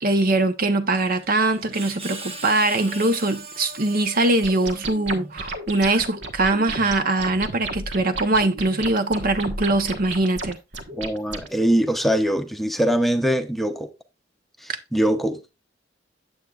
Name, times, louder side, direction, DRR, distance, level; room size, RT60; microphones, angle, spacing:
voice 1, 0.0-10.6 14.7-14.8, right 2 dB, 50° right, 0.9 m, -22 dB
Screech, 1.0-5.3, right 2 dB, 35° right, 1.4 m, -40 dB
sound 1, 4.4-11.5, right 2 dB, 70° right, 1.4 m, -33 dB
voice 2, 11.0-13.9 14.6-15.5, equal, ahead, 0.7 m, -22 dB
9.0 x 7.9 x 2.4 m
head